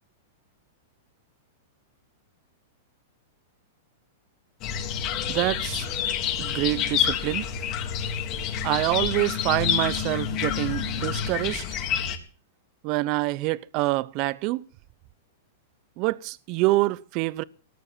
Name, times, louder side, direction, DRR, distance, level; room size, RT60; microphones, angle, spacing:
sound 1, 4.6-12.2, left 8 dB, 40° left, 3.8 m, -28 dB
voice 1, 5.3-5.9 6.4-7.5 8.6-11.6 12.8-14.6 16.0-17.4, right 20 dB, 45° right, 0.8 m, -26 dB
19.0 x 10.0 x 6.3 m
hypercardioid pair, 130°, 0 cm